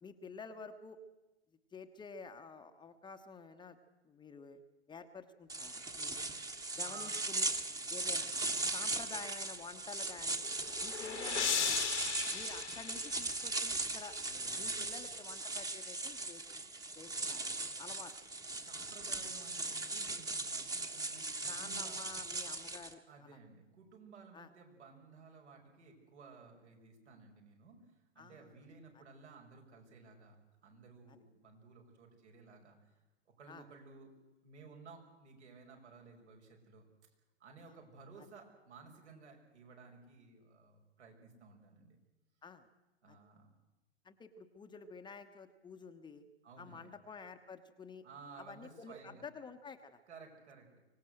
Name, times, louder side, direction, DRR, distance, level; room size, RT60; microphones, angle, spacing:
voice 1, 0.0-1.0 1.7-3.8 4.0-4.6 4.9-6.2 6.7-7.5 7.9-8.3 8.7-10.5 10.8-11.8 12.3-14.2 14.6-16.6 17.0-17.4 17.8-18.1 21.5-23.4 24.3-24.5 28.2-28.5 31.1-31.2 33.5-33.6 42.4-42.7 43.1-43.2 44.0-46.3 46.6-48.0 48.4-50.0, left 4 dB, 15° left, 6 dB, 1.1 m, -50 dB
sound 1, 5.5-22.9, right 2 dB, 10° right, 1.4 m, -39 dB
voice 2, 6.8-7.2 14.2-14.9 18.6-22.0 23.1-30.4 30.6-33.0 33.3-34.1 34.4-36.8 37.4-42.0 43.0-43.5 46.4-46.9 48.0-49.2 50.1-50.7, right 4 dB, 75° right, 1 dB, 5.9 m, -56 dB
sound 2, 10.3-13.7, left 8 dB, 85° left, 1.9 m, -37 dB
24.5 x 17.5 x 7.9 m, 1.1 s
hypercardioid pair, 115°, 34 cm